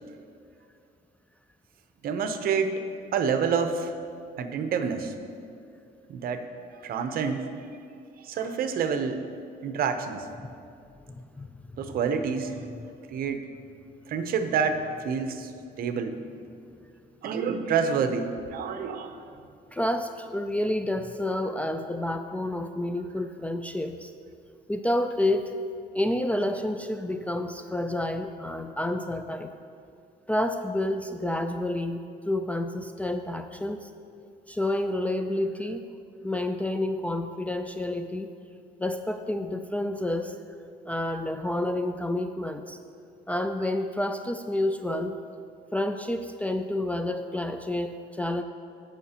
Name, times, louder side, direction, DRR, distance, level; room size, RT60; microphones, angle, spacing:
voice 1, 2.0-2.7 3.1-3.9 4.4-5.1 6.1-6.4 6.8-7.5 8.2-9.3 9.6-10.3 11.8-12.6 13.1-13.5 14.1-15.5 15.8-16.2 17.2-19.2, right 6 dB, 60° right, 7 dB, 0.8 m, -28 dB
voice 2, 11.1-12.0 12.5-12.7 19.7-24.1 24.7-25.5 25.9-29.5 30.3-33.9 34.5-35.9 36.2-38.3 38.8-40.3 40.9-42.8 43.3-45.2 45.7-48.4, left 1 dB, 10° left, 6 dB, 0.3 m, -29 dB
16.5 x 5.7 x 2.9 m, 2.4 s
cardioid pair, 110°, 17 cm